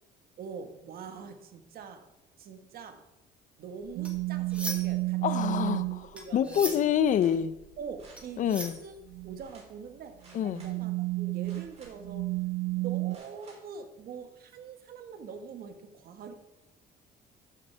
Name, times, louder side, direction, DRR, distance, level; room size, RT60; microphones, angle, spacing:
voice 1, 0.4-2.1 2.4-3.1 3.6-5.2 5.5-5.8 6.1-6.9 7.8-9.0 9.2-12.3 12.8-16.3, right 6 dB, 65° right, 1.4 m, -44 dB
sound 1, 3.8-5.1 5.4-9.4, right 1 dB, 5° right, 2.1 m, -40 dB
sound 2, 4.0-6.1 9.1-9.4 10.3-13.2, right 21 dB, 85° right, 0.4 m, -31 dB
voice 2, 5.2-5.8 6.3-7.6 8.4-8.8 10.3-10.6, left 9 dB, 50° left, 0.5 m, -26 dB
sound 3, 7.0-7.4 8.0-8.8 9.4-9.7 10.2-10.8 11.4-12.1 13.1-13.6 14.2-14.3, right 2 dB, 40° right, 3.4 m, -56 dB
13.0 x 7.3 x 3.3 m
cardioid pair, 110°, 17 cm